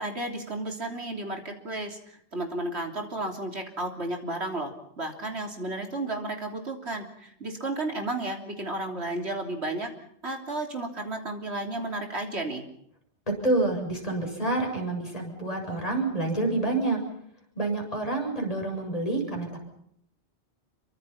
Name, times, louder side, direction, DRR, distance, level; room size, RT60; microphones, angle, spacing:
voice 1, 0.0-9.9 10.2-12.7, right 2 dB, 70° right, 3 dB, 3.5 m, -33 dB
voice 2, 13.3-17.0 17.6-19.5, right 2 dB, 35° left, 1 dB, 7.2 m, -28 dB
26.5 x 24.0 x 5.8 m, 0.71 s
omnidirectional pair, 1.1 m